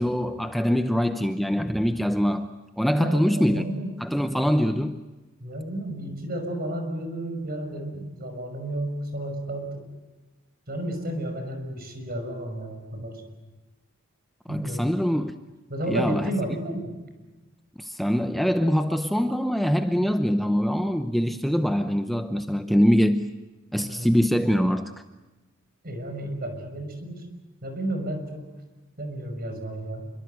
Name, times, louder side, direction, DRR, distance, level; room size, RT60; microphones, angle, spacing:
voice 1, 0.0-2.5 2.8-3.6 4.0-5.0 14.5-15.3 15.9-16.3 17.8-23.3 23.7-24.9, equal, ahead, 0.8 m, -23 dB
voice 2, 2.9-3.9 5.4-9.9 10.7-13.2 14.5-14.9 15.7-16.9 23.8-24.1 25.8-27.3 27.6-28.5 29.0-30.1, right 1 dB, 50° right, 5.8 m, -32 dB
27.5 x 24.0 x 8.0 m
head